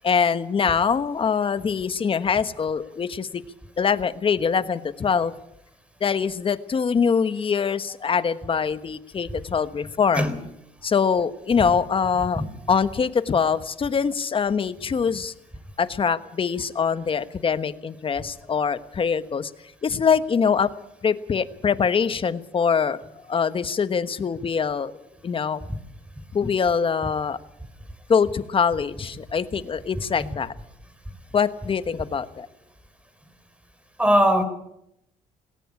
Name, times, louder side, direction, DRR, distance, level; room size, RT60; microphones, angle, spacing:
voice 1, 0.0-3.4 3.8-5.3 6.0-10.3 10.8-12.4 12.7-15.3 15.8-19.5 19.8-20.7 21.0-23.0 23.3-24.9 25.2-25.6 26.3-27.4 28.1-30.5 31.3-32.5, left 6 dB, 35° left, 13 dB, 1.2 m, -23 dB
voice 2, 34.0-34.4, equal, 10° right, 10 dB, 3.8 m, -19 dB
19.0 x 18.0 x 8.6 m, 0.82 s
cardioid pair, 100°, 15 cm